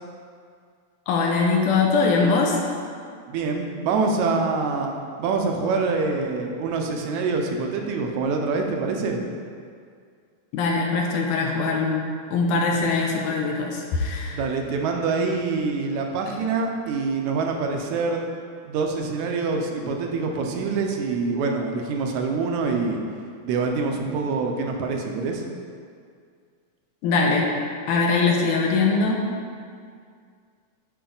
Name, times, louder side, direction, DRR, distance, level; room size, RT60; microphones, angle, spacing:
voice 1, 1.1-2.6 10.5-14.4 27.0-27.5 27.9-29.3, left 4 dB, 80° left, 0 dB, 2.2 m, -22 dB
voice 2, 3.3-9.2 14.3-18.2 18.6-23.0 23.4-25.4, right 4 dB, 75° right, 3 dB, 1.9 m, -25 dB
10.5 x 4.6 x 3.9 m, 2.2 s
omnidirectional pair, 3.6 m